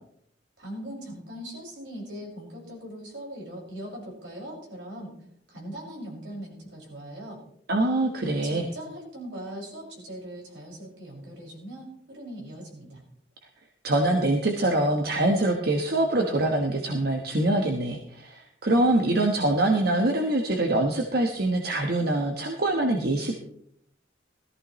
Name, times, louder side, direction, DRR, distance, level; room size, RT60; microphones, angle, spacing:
voice 1, 0.6-5.1 5.5-7.4 8.4-13.0, equal, 85° right, -2 dB, 5.8 m, -40 dB
voice 2, 7.7-8.7 13.8-23.4, right 1 dB, 60° right, 2 dB, 1.2 m, -24 dB
17.0 x 14.0 x 3.1 m, 0.70 s
head